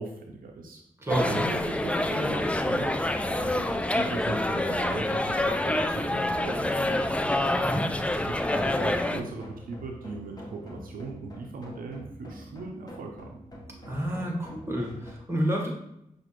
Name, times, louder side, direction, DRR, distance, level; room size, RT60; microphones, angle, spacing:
voice 1, 0.0-0.8 1.1-7.1 8.0-13.4, right 3 dB, 75° right, 2 dB, 0.5 m, -39 dB
sound 1, 1.1-9.2, left 1 dB, 10° left, 0.4 m, -27 dB
sound 2, 1.5-15.1, equal, 25° left, 1.2 m, -45 dB
voice 2, 13.9-15.7, equal, 20° right, -1 dB, 1.5 m, -29 dB
5.8 x 2.5 x 3.0 m, 0.79 s
cardioid pair, 45°, 15 cm